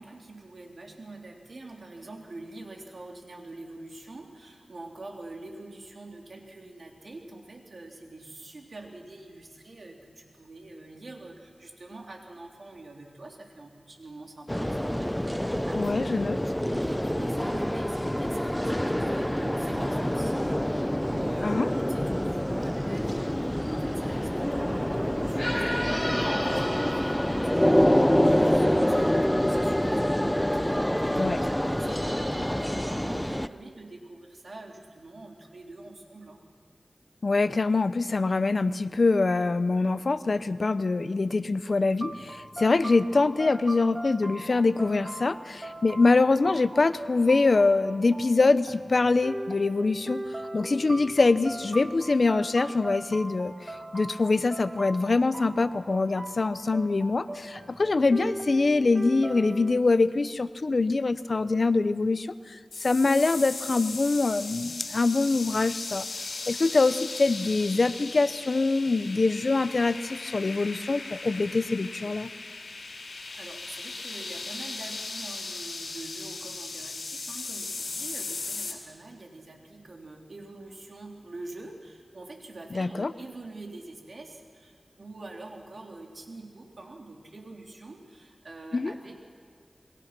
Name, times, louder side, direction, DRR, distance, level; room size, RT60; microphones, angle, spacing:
voice 1, 0.0-36.4 73.0-89.2, right 2 dB, 65° right, 1 dB, 3.6 m, -45 dB
sound 1, 14.5-33.5, equal, 10° left, 0.7 m, -26 dB
voice 2, 15.7-16.4 21.4-21.7 31.2-31.4 37.2-50.2 50.5-72.3 82.7-83.1 88.7-88.9, left 3 dB, 60° left, 13 dB, 0.8 m, -24 dB
sound 2, 42.0-59.8, right 1 dB, 35° right, 1.8 m, -40 dB
sound 3, 62.7-78.7, left 3 dB, 85° left, 3.9 m, -38 dB
28.0 x 22.0 x 6.1 m, 2.1 s
wide cardioid pair, 60°, 0 cm